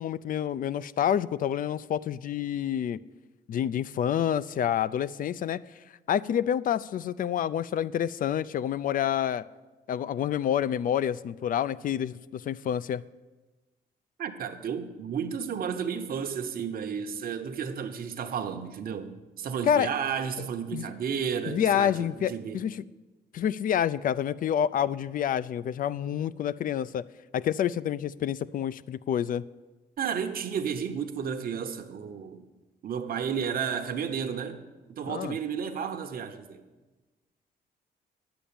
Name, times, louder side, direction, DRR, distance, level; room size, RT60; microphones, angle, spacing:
voice 1, 0.0-3.0 3.5-5.6 6.1-9.4 9.9-13.0 19.6-19.9 20.4-20.9 21.5-22.8 23.3-27.0 27.3-29.4 35.1-35.4, left 9 dB, 55° left, 0.4 m, -28 dB
voice 2, 14.2-22.6 30.0-32.4 32.8-34.6 34.9-36.6, right 7 dB, 60° right, 0.9 m, -32 dB
9.1 x 7.0 x 8.7 m
cardioid pair, 105°, 17 cm